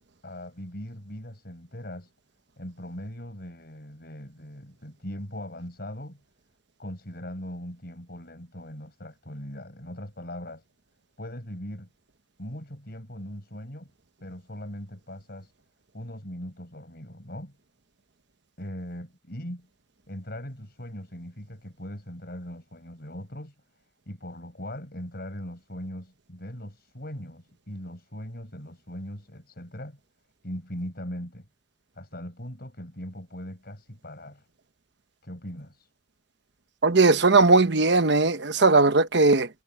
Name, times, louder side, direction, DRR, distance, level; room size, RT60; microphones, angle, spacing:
voice 1, 0.2-2.1 2.6-6.2 6.8-10.6 11.2-11.9 12.4-13.9 14.2-15.5 15.9-17.5 18.6-19.7 20.1-23.5 24.1-30.0 30.4-31.5 31.9-34.5 35.2-35.9, equal, 55° left, 6.9 m, -40 dB
voice 2, 36.8-39.5, right 3 dB, 65° right, 1.1 m, -19 dB
head